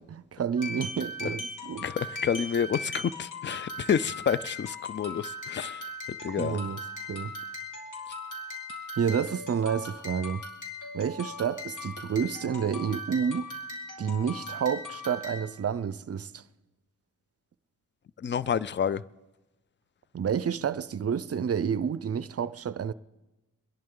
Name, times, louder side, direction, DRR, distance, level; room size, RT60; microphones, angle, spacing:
voice 1, 0.0-1.9 6.4-6.8 7.1-7.3 9.0-10.4 10.9-13.5 14.0-16.4 20.1-22.9, right 7 dB, 45° right, 0.5 m, -29 dB
sound 1, 0.6-15.6, left 2 dB, 60° left, 2.6 m, -39 dB
voice 2, 1.8-5.9 6.2-6.6 18.2-19.0, left 7 dB, 35° left, 0.4 m, -29 dB
24.0 x 11.0 x 3.8 m
cardioid pair, 60°, 34 cm